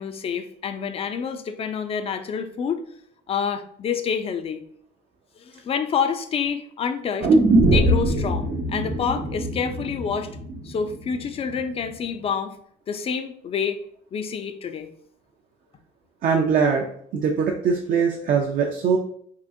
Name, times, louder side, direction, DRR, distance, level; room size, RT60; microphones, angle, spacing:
voice 1, 0.0-2.8 3.3-4.6 5.4-10.4 10.6-12.6 12.9-13.8 14.1-14.9, left 7 dB, 35° left, 9 dB, 0.4 m, -28 dB
sound 1, 7.2-11.3 11.6-11.7, right 2 dB, 80° right, 0.9 m, -22 dB
voice 2, 16.2-19.0, right 6 dB, 55° right, 1 dB, 0.5 m, -22 dB
3.6 x 2.5 x 2.6 m, 0.62 s
cardioid pair, 110°, 17 cm